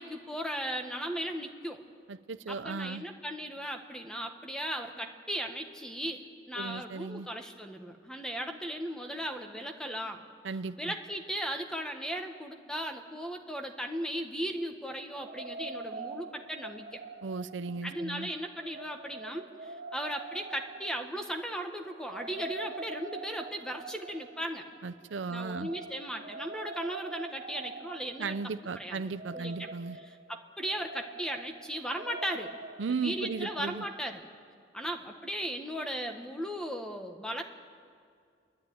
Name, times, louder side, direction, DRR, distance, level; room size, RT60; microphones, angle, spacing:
voice 1, 0.0-1.8 2.5-6.2 6.5-10.2 10.8-16.9 17.8-24.6 25.3-28.4 28.7-29.0 29.3-29.7 30.0-32.5 32.8-34.2 34.7-37.4, equal, 5° left, 4 dB, 1.4 m, -37 dB
voice 2, 2.1-3.0 6.6-7.3 10.4-10.9 17.2-18.3 24.8-25.7 28.2-30.0 32.8-33.8, right 4 dB, 90° right, 14 dB, 0.6 m, -36 dB
sound 1, 15.1-34.0, right 3 dB, 50° right, 0.8 m, -45 dB
29.5 x 11.0 x 9.4 m, 2.2 s
head